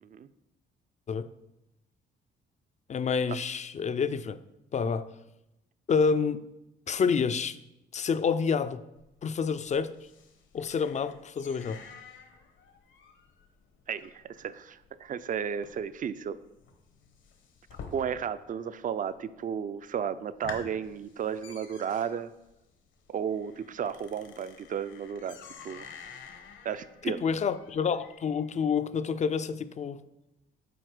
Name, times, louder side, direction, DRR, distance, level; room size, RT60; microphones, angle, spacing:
voice 1, 2.9-4.4 4.7-5.1 5.9-6.4 6.9-7.6 7.9-8.8 9.2-9.9 10.5-11.8 27.1-30.0, left 6 dB, 35° left, 13 dB, 0.4 m, -28 dB
sound 1, 9.0-18.5 18.8-19.4 19.8-19.9 20.2-28.5, left 5 dB, 75° left, 1.2 m, -50 dB
voice 2, 13.9-16.4 17.9-22.3 23.1-25.4 25.6-25.9 26.6-27.2, right 8 dB, 40° right, 14 dB, 0.4 m, -33 dB
7.8 x 4.3 x 4.9 m, 0.91 s
cardioid pair, 90°, 20 cm